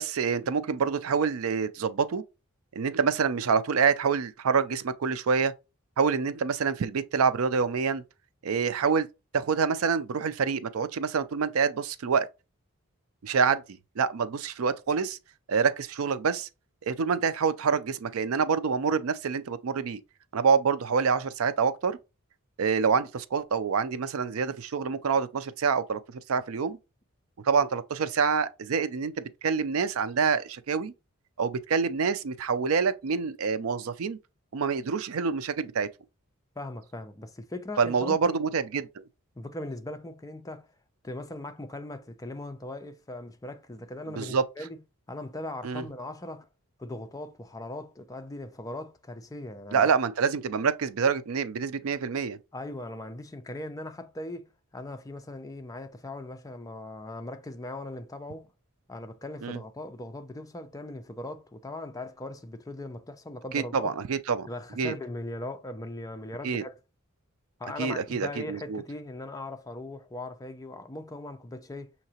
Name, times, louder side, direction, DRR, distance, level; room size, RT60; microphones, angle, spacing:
voice 1, 0.0-2.2 2.7-5.5 6.0-8.0 8.4-9.1 9.3-12.3 13.2-13.6 14.0-15.2 15.5-16.5 16.9-20.0 20.3-22.0 22.6-26.0 26.3-26.8 27.4-30.9 31.4-34.2 34.5-35.9 37.8-39.0 44.1-44.4 45.6-45.8 49.7-52.4 59.4-59.6 63.5-64.5 64.8-64.9 66.4-66.6 67.8-68.8, right 5 dB, 70° right, 0.4 m, -26 dB
voice 2, 36.6-38.4 39.4-40.7 41.0-44.8 45.1-46.5 46.8-49.9 52.5-58.5 58.9-63.9 64.5-66.8 67.6-71.9, left 1 dB, 15° left, 0.5 m, -39 dB
6.4 x 2.9 x 2.8 m
head